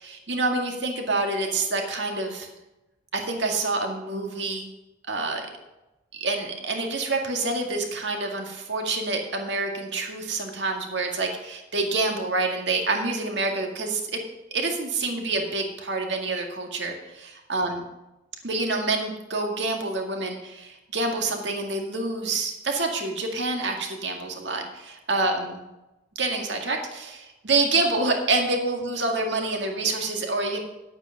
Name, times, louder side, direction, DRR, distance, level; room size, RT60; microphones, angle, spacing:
voice 1, 0.0-2.5 3.1-4.7 5.1-5.5 6.1-14.2 14.5-17.8 18.4-25.6 26.2-30.6, right 3 dB, 70° right, 2 dB, 2.0 m, -27 dB
10.0 x 8.8 x 5.7 m, 0.99 s
head